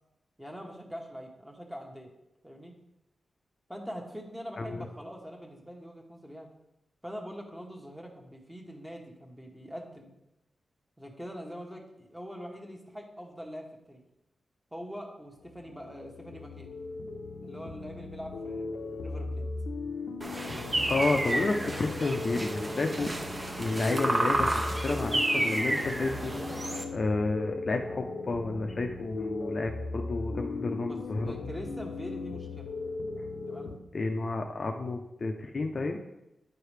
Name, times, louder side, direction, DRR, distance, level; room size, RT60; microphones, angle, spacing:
voice 1, 0.4-2.1 2.4-2.7 3.7-6.5 7.0-10.1 11.0-14.0 14.7-16.7 17.4-18.7 19.0-19.4 30.8-31.0 31.2-32.7 33.5-33.7, equal, 5° right, 0 dB, 1.1 m, -43 dB
sound 1, 15.4-33.8, left 3 dB, 90° left, 0.6 m, -38 dB
sound 2, 20.2-26.8, right 1 dB, 25° right, 0.6 m, -31 dB
voice 2, 20.9-23.1 23.6-24.5 24.8-26.3 26.9-31.3 33.9-36.0, left 3 dB, 45° left, 3 dB, 0.5 m, -31 dB
9.7 x 4.8 x 3.3 m, 0.90 s
wide cardioid pair, 115°, 0 cm